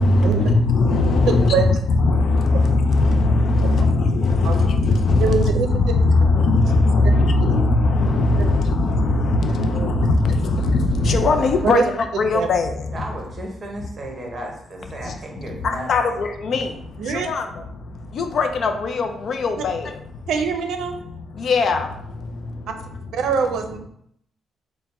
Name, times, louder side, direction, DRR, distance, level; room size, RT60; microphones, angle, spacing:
voice 1, 0.0-13.0 15.0-15.2 15.5-20.3 21.0-23.0, left 3 dB, 50° left, 6 dB, 0.4 m, -20 dB
voice 2, 5.2-5.7 7.5-7.6 8.4-8.5 9.7-9.9 11.6-11.8 12.3-12.5 17.0-17.3 20.3-21.0 23.1-23.9, right 6 dB, 80° right, 6 dB, 0.5 m, -23 dB
voice 3, 12.9-16.2, right 1 dB, 25° right, 0 dB, 0.9 m, -34 dB
4.2 x 2.1 x 4.1 m, 0.71 s
cardioid pair, 160°, 0 cm